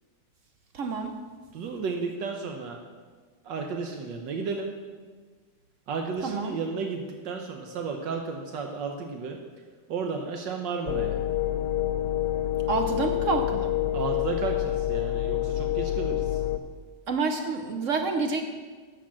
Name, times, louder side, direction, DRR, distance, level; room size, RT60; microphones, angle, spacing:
voice 1, 0.7-1.2 6.2-6.6 12.7-13.7 17.1-18.4, right 4 dB, 60° right, 5 dB, 0.9 m, -28 dB
voice 2, 1.5-2.8 3.4-4.8 5.9-9.4 9.9-11.2 13.9-16.4, right 5 dB, 80° right, 3 dB, 1.5 m, -33 dB
sound 1, 10.9-16.6, left 13 dB, 75° left, 1.2 m, -27 dB
12.5 x 5.1 x 7.5 m, 1.5 s
omnidirectional pair, 2.0 m